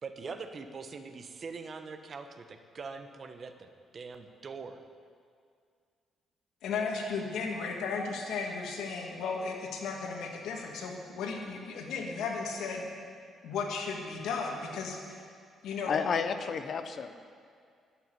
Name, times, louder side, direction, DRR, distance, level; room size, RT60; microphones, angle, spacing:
voice 1, 0.0-4.8, right 4 dB, 45° right, 8 dB, 1.1 m, -43 dB
voice 2, 6.6-12.8 13.4-15.2 15.6-16.0, left 4 dB, 80° left, 1 dB, 2.0 m, -35 dB
voice 3, 15.9-17.1, left 6 dB, 50° left, 10 dB, 0.9 m, -31 dB
11.5 x 8.4 x 9.8 m, 2.2 s
cardioid pair, 90°, 0 cm